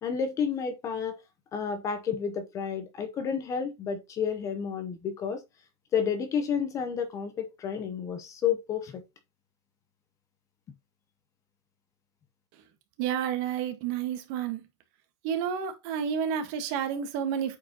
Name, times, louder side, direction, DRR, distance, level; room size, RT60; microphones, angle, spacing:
voice 1, 0.0-1.2 1.5-5.4 5.9-9.0, left 7 dB, 20° left, 0.8 m, -30 dB
voice 2, 13.0-14.6 15.2-17.6, right 8 dB, 45° right, 1.6 m, -30 dB
8.6 x 4.8 x 2.9 m
supercardioid pair, 165°, 14 cm